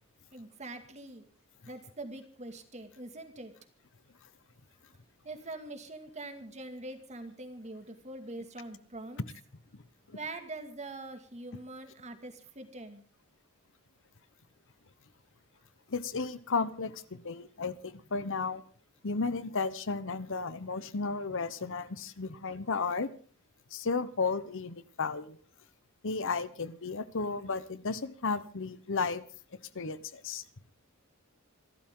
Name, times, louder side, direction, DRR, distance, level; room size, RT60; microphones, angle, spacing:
voice 1, 0.3-1.2 1.7-3.5 5.2-9.2 10.1-13.0, right 2 dB, 30° right, 7 dB, 2.3 m, -43 dB
voice 2, 15.9-18.6 19.0-23.1 23.7-25.4 26.0-29.2 29.7-30.4, left 4 dB, 60° left, 14 dB, 1.0 m, -33 dB
26.5 x 13.0 x 3.8 m, 0.41 s
head